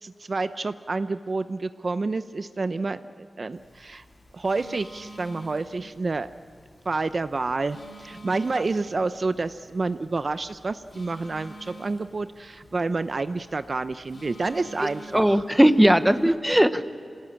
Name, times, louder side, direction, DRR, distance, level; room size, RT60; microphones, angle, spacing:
voice 1, 0.0-4.0 4.3-6.3 6.9-15.4, right 3 dB, 40° right, 11 dB, 0.6 m, -29 dB
Telephone, 3.5-16.3, right 1 dB, 45° left, 6.2 m, -48 dB
voice 2, 14.8-16.8, equal, 5° right, 11 dB, 0.9 m, -19 dB
27.0 x 19.0 x 8.7 m, 2.4 s
wide cardioid pair, 135°, 0 cm